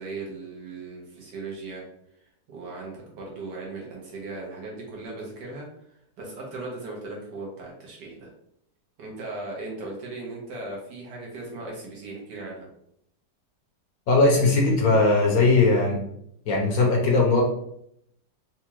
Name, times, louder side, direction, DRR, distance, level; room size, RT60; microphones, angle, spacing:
voice 1, 0.0-1.8 2.5-5.7 6.2-8.3 9.0-12.7, right 3 dB, 75° right, -2 dB, 1.6 m, -37 dB
voice 2, 14.1-16.0 16.5-17.4, left 3 dB, 65° left, -1 dB, 1.1 m, -19 dB
4.2 x 2.4 x 2.9 m, 0.74 s
omnidirectional pair, 1.9 m